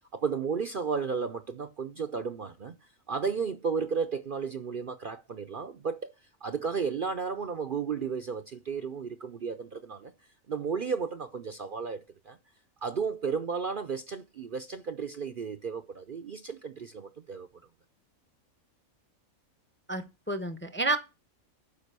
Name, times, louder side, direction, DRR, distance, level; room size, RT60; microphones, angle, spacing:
voice 1, 0.1-2.8 3.1-12.4 12.8-17.5, right 5 dB, 50° right, 0.7 m, -33 dB
voice 2, 19.9-21.0, right 2 dB, 10° left, 0.7 m, -30 dB
12.0 x 5.1 x 6.7 m
omnidirectional pair, 1.4 m